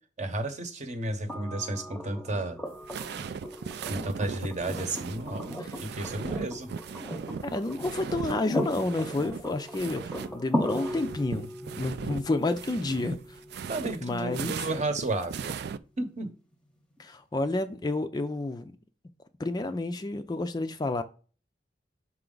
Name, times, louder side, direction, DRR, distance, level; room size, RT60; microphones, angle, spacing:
voice 1, 0.2-2.6 3.9-5.5 5.8-6.7 13.7-15.6 16.0-16.3, right 2 dB, 40° right, 1.0 m, -32 dB
sound 1, 1.3-15.2 17.0-17.1, equal, 5° left, 0.8 m, -38 dB
sound 2, 2.7-10.3 10.6-15.8, right 6 dB, 65° right, 0.4 m, -38 dB
voice 2, 7.4-13.2 14.0-14.6 17.0-18.7 19.4-21.0, left 2 dB, 20° left, 0.4 m, -30 dB
6.0 x 4.5 x 3.8 m
head